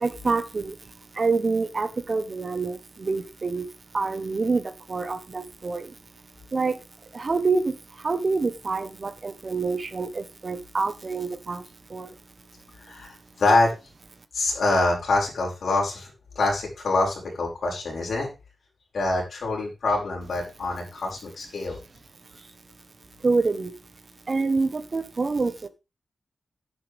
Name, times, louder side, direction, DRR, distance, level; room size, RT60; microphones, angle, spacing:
voice 1, 0.0-0.8 1.2-3.7 3.9-4.6 4.9-5.9 6.5-6.7 7.1-7.7 8.0-11.6 11.9-12.1 23.2-23.7 24.3-25.7, right 4 dB, 35° right, 10 dB, 1.1 m, -26 dB
voice 2, 12.8-13.7 14.3-16.1 16.4-18.3 18.9-21.8, left 2 dB, 70° left, -1 dB, 5.7 m, -25 dB
11.0 x 10.0 x 3.5 m, 0.28 s
wide cardioid pair, 170°, 0 cm